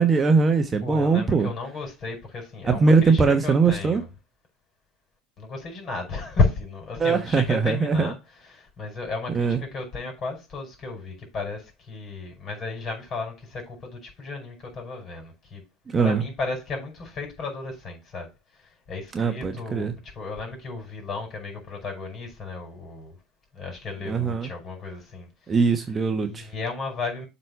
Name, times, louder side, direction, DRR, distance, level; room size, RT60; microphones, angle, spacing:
voice 1, 0.0-1.5 2.6-4.0 7.0-8.1 9.3-9.6 15.9-16.2 19.1-19.9 24.1-24.5 25.5-26.5, right 4 dB, 25° right, 1.1 m, -21 dB
voice 2, 0.8-4.1 5.4-8.2 8.4-15.6 16.0-18.3 18.9-23.2 23.5-25.3 26.2-27.3, left 4 dB, 40° left, 5.2 m, -33 dB
7.6 x 4.2 x 5.7 m
hypercardioid pair, 80°, 0 cm